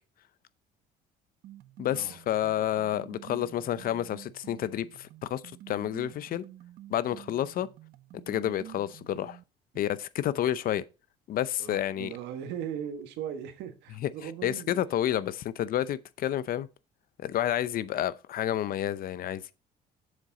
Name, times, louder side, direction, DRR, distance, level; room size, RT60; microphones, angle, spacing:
sound 1, 1.4-9.4, right 12 dB, 65° right, 0.6 m, -49 dB
voice 1, 1.8-5.4 5.7-6.4 6.9-7.7 8.1-9.4 9.7-10.8 11.3-12.1 14.4-16.7 17.2-19.5, left 11 dB, 60° left, 0.6 m, -30 dB
voice 2, 11.6-14.9, right 9 dB, 85° right, 1.3 m, -39 dB
7.3 x 6.5 x 3.8 m
cardioid pair, 110°, 17 cm